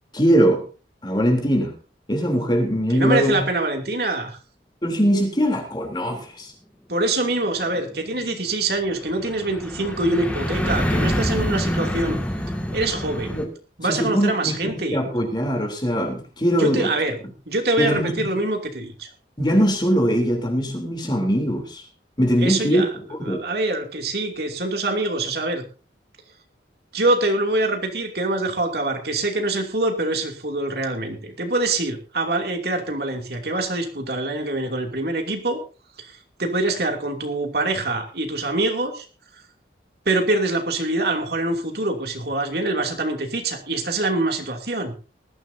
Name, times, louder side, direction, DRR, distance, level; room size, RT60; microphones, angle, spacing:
voice 1, 0.1-0.6 1.0-1.8 2.1-3.4 4.8-6.5 13.3-13.5 13.8-16.9 17.8-18.3 19.4-21.8 22.2-22.8 23.2-23.5, equal, 25° left, 2 dB, 3.5 m, -21 dB
voice 2, 2.9-4.4 6.9-12.2 12.7-13.4 13.8-15.0 16.6-17.2 17.5-19.1 22.4-22.9 23.2-25.6 26.9-35.6 36.0-39.1 40.0-44.9, right 2 dB, 60° right, 3 dB, 2.8 m, -24 dB
sound 1, 7.1-13.4, equal, 10° left, 2.1 m, -26 dB
20.0 x 14.5 x 2.8 m, 0.34 s
head